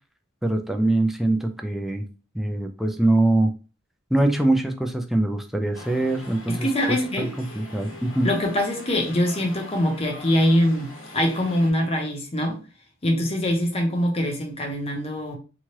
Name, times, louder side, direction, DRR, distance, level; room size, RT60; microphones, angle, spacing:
voice 1, 0.4-2.0 2.3-3.5 4.1-8.3, right 2 dB, ahead, 0.3 m, -23 dB
sound 1, 5.7-11.7, left 1 dB, 85° left, 1.1 m, -42 dB
voice 2, 6.5-7.3 8.2-12.6 13.0-15.4, left 1 dB, 30° left, 0.7 m, -23 dB
3.0 x 2.4 x 2.8 m
head